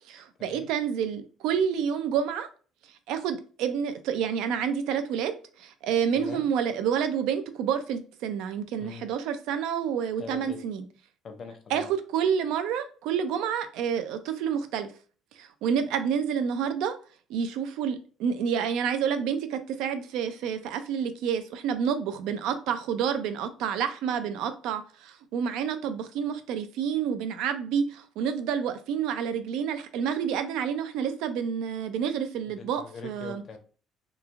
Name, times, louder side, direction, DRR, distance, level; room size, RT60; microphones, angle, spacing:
voice 1, 0.1-2.5 3.1-10.9 11.7-14.9 15.4-16.9 17.3-33.4, right 7 dB, 85° right, 0.4 m, -29 dB
voice 2, 10.2-10.6 11.2-11.9 32.6-33.6, left 5 dB, 40° left, 0.5 m, -42 dB
3.0 x 2.4 x 2.4 m
cardioid pair, 135°, 0 cm